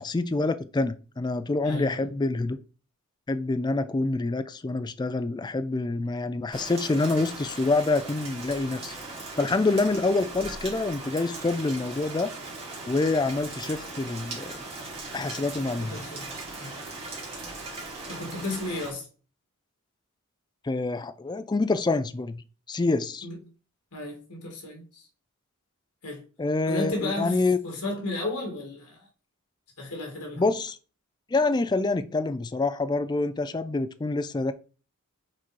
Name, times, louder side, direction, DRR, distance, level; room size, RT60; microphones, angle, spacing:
voice 1, 0.0-2.6 3.3-9.0 9.4-12.3 12.9-14.6 15.1-16.0 20.6-23.3 26.4-27.6 30.4-30.8 31.3-34.5, left 3 dB, 20° left, 0.3 m, -26 dB
voice 2, 1.6-2.1 15.7-16.8 18.1-19.1 23.2-23.4 23.9-25.0 26.0-26.2 26.7-29.1 29.8-30.4, left 2 dB, 85° left, 2.7 m, -34 dB
Rain, 6.5-18.9, right 3 dB, 30° right, 2.5 m, -39 dB
6.1 x 4.2 x 4.6 m
head